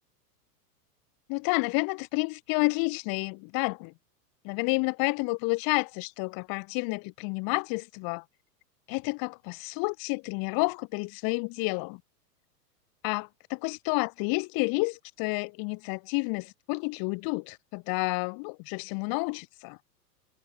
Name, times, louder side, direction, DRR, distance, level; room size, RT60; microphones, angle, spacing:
voice 1, 1.3-3.9 4.4-8.2 8.9-12.0 13.0-19.8, left 31 dB, 45° left, 3.6 m, -30 dB
hypercardioid pair, 115°, 48 cm